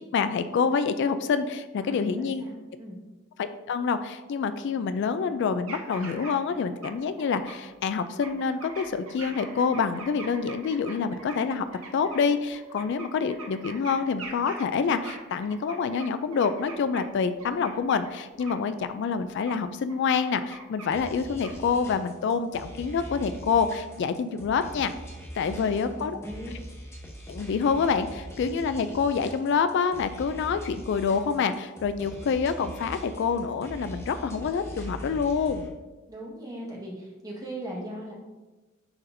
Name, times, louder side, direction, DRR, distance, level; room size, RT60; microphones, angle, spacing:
voice 1, 0.0-2.4 3.4-11.6 11.9-24.9 25.4-26.2 27.3-35.7, left 5 dB, 55° left, 11 dB, 0.3 m, -27 dB
voice 2, 1.8-3.0 25.5-26.6 36.1-38.1, equal, 20° right, -3 dB, 1.5 m, -39 dB
sound 1, 5.7-6.6 6.8-7.5 7.9-17.1 17.4-18.1 18.4-18.6 19.5-19.6 19.9-21.2 21.4-21.8, right 3 dB, 80° right, 1.1 m, -43 dB
sound 2, 20.9-35.7, equal, 15° left, 0.9 m, -42 dB
9.9 x 4.2 x 2.6 m, 1.2 s
head